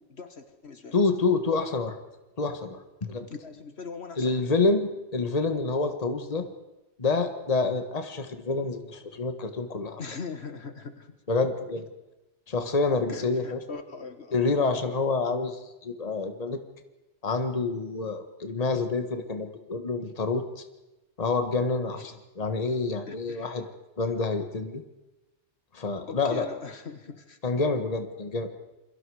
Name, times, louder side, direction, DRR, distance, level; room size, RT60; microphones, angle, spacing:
voice 1, 0.0-1.1 3.3-4.6 10.0-11.2 13.1-14.4 21.9-22.2 23.1-23.6 26.1-27.4, left 5 dB, 65° left, 8 dB, 1.8 m, -41 dB
voice 2, 0.9-1.9 2.4-3.3 4.2-6.5 7.0-10.0 11.3-11.8 12.5-13.6 14.3-16.6 17.2-20.4 21.2-22.1 22.4-23.6 24.0-24.8 25.7-26.5 27.4-28.5, left 3 dB, 35° left, 7 dB, 1.5 m, -27 dB
28.0 x 23.5 x 4.9 m, 1.0 s
omnidirectional pair, 1.2 m